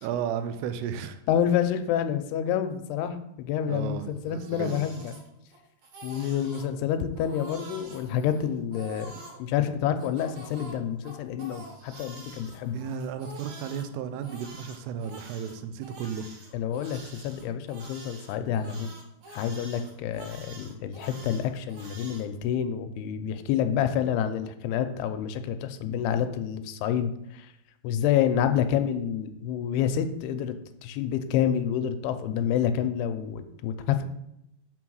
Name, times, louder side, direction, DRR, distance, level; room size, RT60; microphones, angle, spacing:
voice 1, 0.0-1.2 3.7-4.8 12.7-16.3, right 8 dB, 85° right, 10 dB, 2.6 m, -34 dB
voice 2, 1.3-5.2 6.0-9.1 9.4-12.8 16.5-18.9 19.3-27.5 27.8-30.6 30.8-34.0, left 9 dB, 85° left, 9 dB, 2.6 m, -28 dB
Crying sobbing, 4.1-5.6 5.8-6.7 7.1-9.4 10.0-13.8 14.2-22.2, right 2 dB, 60° right, 2.2 m, -47 dB
5.8 x 4.6 x 6.2 m, 0.81 s
omnidirectional pair, 4.6 m